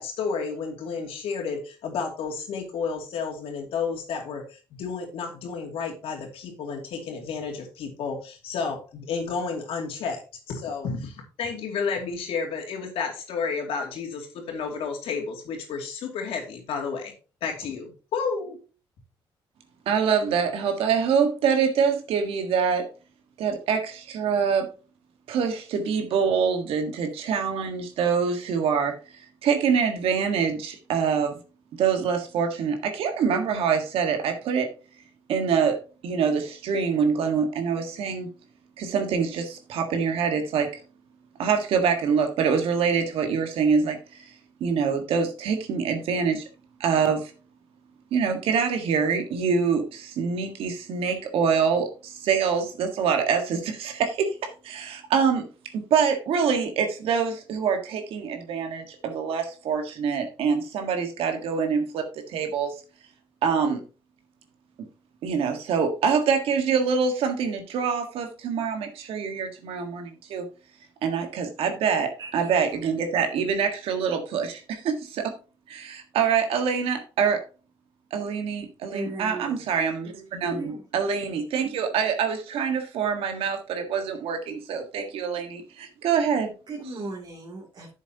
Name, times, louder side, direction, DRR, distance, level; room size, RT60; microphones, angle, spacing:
voice 1, 0.0-10.2 10.5-17.1 17.4-18.6, left 5 dB, 85° left, 2 dB, 2.5 m, -31 dB
voice 2, 19.8-22.9 23.4-24.7 25.3-28.9 29.4-31.4 31.8-34.7 35.3-38.3 38.8-40.7 41.4-44.2 44.6-46.5 46.8-47.3 48.1-54.4 54.6-55.5 55.7-62.7 63.4-63.8 65.2-70.5 71.0-75.3 75.7-77.4 78.1-86.5, right 6 dB, 80° right, 5 dB, 1.6 m, -25 dB
voice 3, 72.2-72.5 78.9-79.7 80.5-80.9 86.7-87.9, right 2 dB, 55° right, -3 dB, 2.8 m, -37 dB
10.5 x 7.4 x 2.9 m, 0.34 s
cardioid pair, 100°, 10 cm